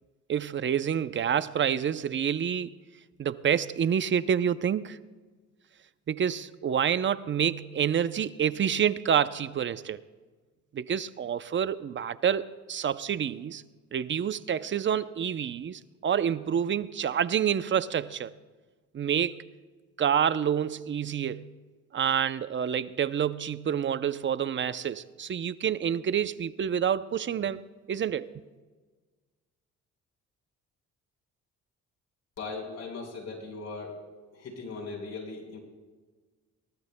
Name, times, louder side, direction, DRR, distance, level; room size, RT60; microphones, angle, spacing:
voice 1, 0.3-2.7 3.2-5.0 6.1-10.0 10.7-13.6 13.9-18.3 18.9-19.4 20.0-21.4 21.9-27.6 27.9-28.3, right 8 dB, 40° right, 0.6 m, -28 dB
voice 2, 32.4-34.0 34.3-35.6, left 3 dB, 60° left, 4.8 m, -39 dB
22.5 x 19.0 x 2.2 m
cardioid pair, 90°, 30 cm